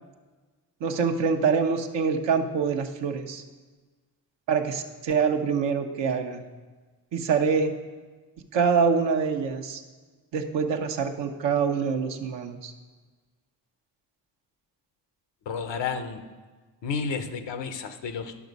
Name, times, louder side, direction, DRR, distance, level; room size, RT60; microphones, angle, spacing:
voice 1, 0.8-3.4 4.5-6.4 7.1-7.7 8.5-9.8 10.3-12.7, right 6 dB, 85° right, 5 dB, 0.9 m, -25 dB
voice 2, 15.5-16.2 16.8-18.5, left 5 dB, 85° left, 9 dB, 0.8 m, -31 dB
11.0 x 6.1 x 5.2 m, 1.3 s
cardioid pair, 55°, 42 cm